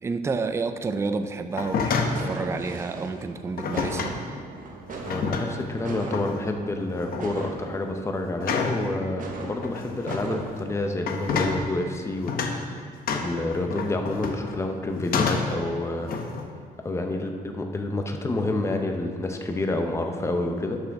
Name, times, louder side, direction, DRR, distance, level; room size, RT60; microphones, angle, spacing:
voice 1, 0.0-4.1, right 4 dB, 15° right, 9 dB, 0.3 m, -30 dB
sound 1, 1.5-2.3 3.6-4.2 4.9-5.7 6.1-6.4 6.9-7.3 8.4-8.9 9.6-10.3 11.0-11.6 12.3-12.6 13.1-14.6 15.0-15.6 16.1-16.5, left 5 dB, 60° left, 0.8 m, -28 dB
sound 2, 1.7-11.6, right 3 dB, 55° right, 1.0 m, -40 dB
voice 2, 5.0-12.5 13.1-16.1 16.8-20.8, left 2 dB, 15° left, 4 dB, 0.7 m, -28 dB
11.0 x 6.2 x 3.5 m, 2.1 s
cardioid pair, 130°, 17 cm